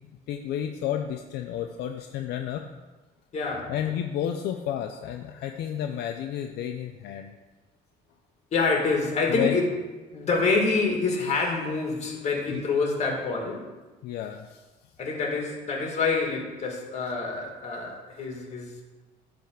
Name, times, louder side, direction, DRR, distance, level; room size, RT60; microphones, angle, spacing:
voice 1, 0.3-2.6 3.7-7.4 9.3-9.6 12.5-12.6 14.0-14.6, left 10 dB, 75° left, 4 dB, 0.6 m, -31 dB
voice 2, 3.3-3.7 8.5-9.7 10.1-13.7 15.0-18.8, left 4 dB, 40° left, 1 dB, 2.1 m, -27 dB
10.5 x 3.5 x 6.5 m, 1.2 s
cardioid pair, 110°, 17 cm